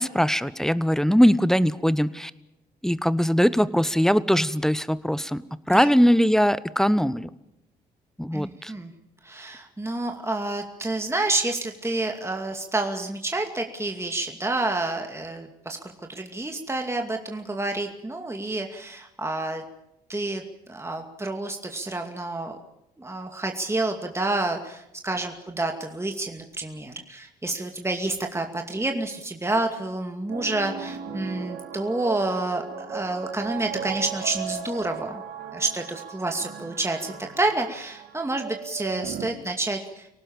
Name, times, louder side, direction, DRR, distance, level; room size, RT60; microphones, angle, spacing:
voice 1, 0.0-2.3 2.8-5.4 5.7-7.3 8.2-8.7, equal, ahead, 17 dB, 1.1 m, -21 dB
voice 2, 8.3-8.9 9.2-15.8 16.1-19.6 20.1-20.4 20.7-22.6 23.0-35.2 35.5-40.1, right 2 dB, 15° right, 3 dB, 2.4 m, -29 dB
sound 1, 30.3-39.3, right 7 dB, 65° right, 3.2 m, -37 dB
25.0 x 18.5 x 7.2 m, 0.87 s
hypercardioid pair, 45°, 20 cm